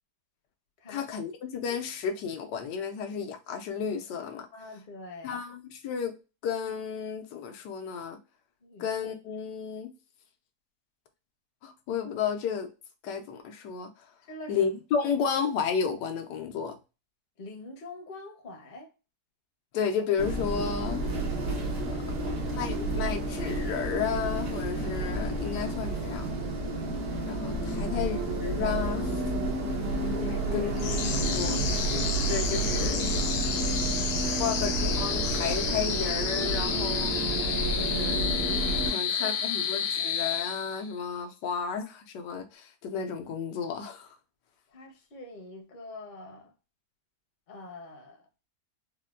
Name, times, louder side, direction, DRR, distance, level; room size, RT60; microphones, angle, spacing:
voice 1, 0.9-4.5 5.2-6.1 6.4-8.2 8.8-9.9 11.6-12.7 13.0-13.9 14.5-16.8 19.7-21.0 21.9-22.0 22.5-26.3 27.3-29.3 30.5-31.6 32.3-33.1 34.2-37.1 37.8-38.5 38.9-44.1, left 6 dB, 85° left, 1.3 m, -32 dB
voice 2, 4.5-5.4 8.6-8.9 14.3-14.7 15.0-15.1 17.4-18.9 22.2-22.6 27.9-28.1 30.2-30.9 34.5-34.6 38.8-39.4 44.7-46.5 47.5-48.2, left 2 dB, 45° left, 0.7 m, -45 dB
sound 1, 20.2-38.9, right 2 dB, 70° right, 1.5 m, -30 dB
sound 2, 30.8-41.0, left 7 dB, 70° left, 0.9 m, -31 dB
4.1 x 2.1 x 2.3 m
omnidirectional pair, 1.8 m